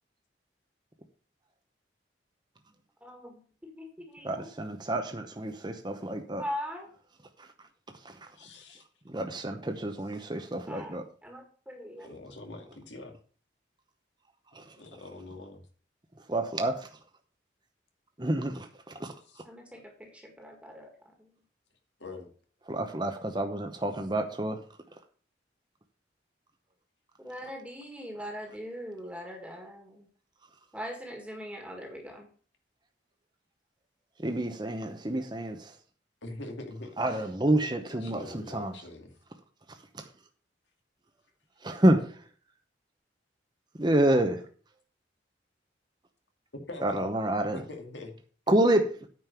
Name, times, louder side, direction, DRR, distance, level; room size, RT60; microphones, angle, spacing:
voice 1, 3.0-4.5 6.4-6.9 10.7-12.1 19.4-20.9 21.2-21.3 27.2-30.1 30.7-32.3, equal, 5° right, 1.8 m, -41 dB
voice 2, 4.2-6.4 8.0-8.2 9.1-11.0 14.5-14.6 16.3-16.9 18.2-18.7 19.0-19.1 22.7-24.6 34.2-35.7 37.0-38.7 39.9-40.1 41.6-42.2 43.8-44.4 46.8-47.6 48.5-49.1, right 1 dB, 25° right, 0.9 m, -28 dB
voice 3, 8.4-8.8 12.0-13.1 14.8-15.6 19.2-19.4 22.0-22.3 36.2-37.3 38.0-39.1 46.5-47.1 47.5-48.1, left 2 dB, 80° left, 2.2 m, -43 dB
9.3 x 5.4 x 6.8 m
head